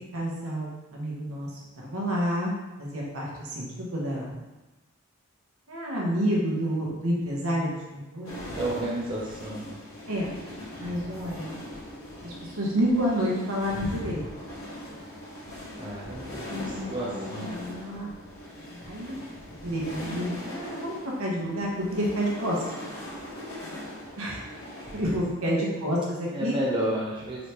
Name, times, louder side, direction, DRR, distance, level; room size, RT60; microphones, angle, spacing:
voice 1, 0.1-2.5 2.8-4.4 5.7-8.3 10.1-10.3 10.8-11.6 12.2-14.2 16.5-18.1 18.6-19.2 19.6-22.6 24.2-24.4 24.9-26.5, equal, 80° right, -3 dB, 1.0 m, -29 dB
sound 1, 8.2-25.2, left 1 dB, 80° left, 1.3 m, -40 dB
voice 2, 8.4-9.8 15.8-17.5 25.4-25.8 26.3-27.5, right 1 dB, 20° right, -4 dB, 0.5 m, -32 dB
4.0 x 3.3 x 2.9 m, 1.1 s
head